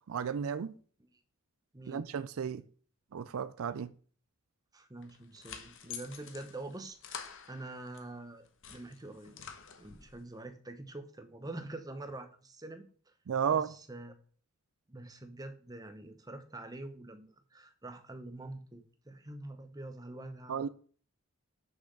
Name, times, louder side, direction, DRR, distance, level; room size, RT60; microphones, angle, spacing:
voice 1, 0.1-0.7 1.9-2.6 3.1-3.9 13.3-13.7 20.5-20.7, right 7 dB, 70° right, 0.4 m, -33 dB
voice 2, 1.7-2.1 4.7-9.3 9.8-13.1 13.5-14.2 14.9-20.7, right 2 dB, 15° right, 0.8 m, -46 dB
sound 1, 5.0-8.1 8.4-10.2, left 7 dB, 55° left, 1.0 m, -48 dB
6.4 x 5.8 x 6.4 m
head